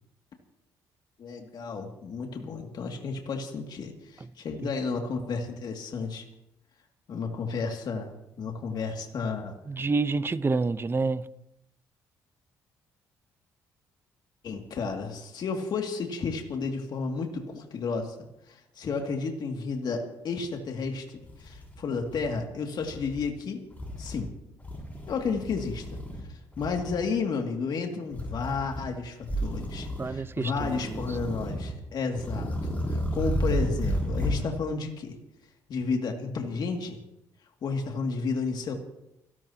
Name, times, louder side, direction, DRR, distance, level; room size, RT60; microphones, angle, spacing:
voice 1, 1.2-6.2 7.1-8.1 8.4-9.5 14.4-18.2 18.5-23.6 24.0-24.3 25.1-26.0 26.3-35.1 35.7-37.0 37.6-38.7, left 4 dB, 60° left, 2.5 m, -32 dB
voice 2, 9.7-11.2 30.0-31.4, right 3 dB, 30° right, 0.9 m, -29 dB
sound 1, 21.3-22.4 22.8-23.2 23.7-24.3 24.6-26.2 26.5-27.0 28.1-28.9 29.2-30.2 30.5-31.7 32.1-34.5, equal, 20° left, 6.5 m, -32 dB
30.0 x 12.5 x 3.0 m
supercardioid pair, 60°, 8 cm